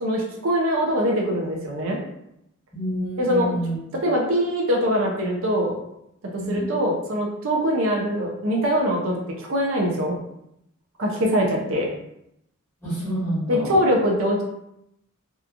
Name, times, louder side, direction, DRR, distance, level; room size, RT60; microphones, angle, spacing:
voice 1, 0.0-2.0 3.2-3.5 4.0-5.8 6.3-10.2 11.0-11.9 13.5-14.4, equal, 70° right, -1 dB, 0.5 m, -23 dB
voice 2, 2.7-3.8 6.4-6.7 11.4-11.5 12.8-13.8, equal, 10° left, -10 dB, 1.3 m, -28 dB
2.8 x 2.3 x 2.4 m, 0.80 s
head